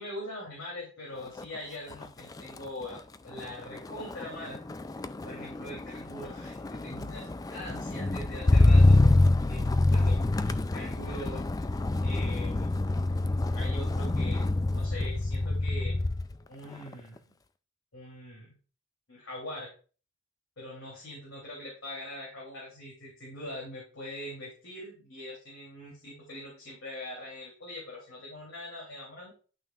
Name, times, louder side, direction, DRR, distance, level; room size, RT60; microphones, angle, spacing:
voice 1, 0.0-4.6 4.8-9.0 9.5-10.2 10.6-11.7 12.0-12.6 13.5-16.0 16.5-17.3 17.9-18.6 19.1-19.7 20.6-29.3, left 1 dB, 85° left, -4 dB, 3.1 m, -42 dB
Motor vehicle (road), 1.2-1.6 1.9-16.3 16.7-17.2, left 2 dB, 20° left, 0.3 m, -26 dB
11.0 x 6.2 x 2.5 m, 0.38 s
head